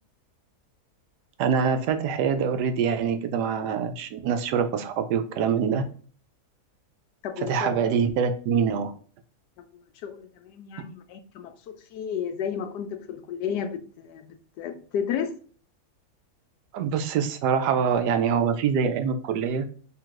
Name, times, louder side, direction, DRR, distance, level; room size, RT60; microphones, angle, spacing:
voice 1, 1.4-5.8 7.4-8.9 16.7-19.7, right 6 dB, 90° right, 8 dB, 1.2 m, -24 dB
voice 2, 7.2-7.8 9.6-15.3, left 8 dB, 90° left, 8 dB, 1.2 m, -33 dB
3.4 x 2.5 x 4.5 m, 0.43 s
omnidirectional pair, 1.7 m